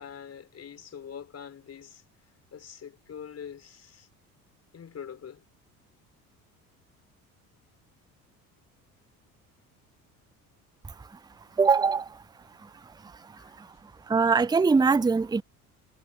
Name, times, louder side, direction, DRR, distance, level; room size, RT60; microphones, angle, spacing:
voice 1, 0.0-2.0 2.5-4.1 4.7-5.4 13.4-13.5, left 8 dB, 35° left, 5.3 m, -44 dB
voice 2, 11.6-12.1 14.1-15.4, right 4 dB, 10° right, 0.8 m, -21 dB
figure-of-eight pair, 60°, 44 cm